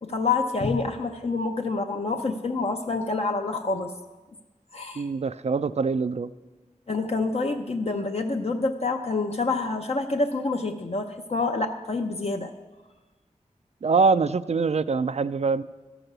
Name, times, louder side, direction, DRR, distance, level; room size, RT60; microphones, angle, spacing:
voice 1, 0.0-3.9 4.7-5.1 6.9-12.5, left 3 dB, 50° left, 3 dB, 0.6 m, -27 dB
voice 2, 5.0-6.3 13.8-15.6, right 4 dB, 55° right, 14 dB, 0.4 m, -24 dB
13.5 x 6.0 x 6.7 m, 1.2 s
wide cardioid pair, 80°, 13 cm